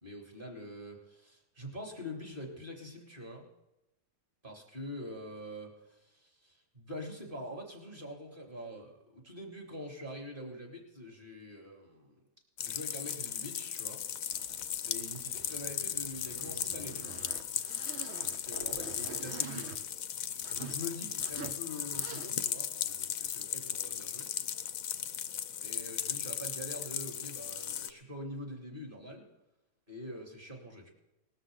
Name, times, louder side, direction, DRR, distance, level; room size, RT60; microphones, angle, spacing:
voice 1, 0.0-3.5 4.4-12.2 12.6-14.0 14.8-17.2 18.5-19.8 20.6-24.3 25.6-29.3 29.9-30.9, left 1 dB, 30° right, 1 dB, 3.2 m, -44 dB
sound 1, 12.6-27.9, left 9 dB, 60° left, 1.0 m, -37 dB
Zipper (clothing), 14.3-20.8 21.2-21.6 21.9-22.5, right 7 dB, 50° right, 0.8 m, -48 dB
19.5 x 13.5 x 3.9 m, 0.93 s
omnidirectional pair, 1.8 m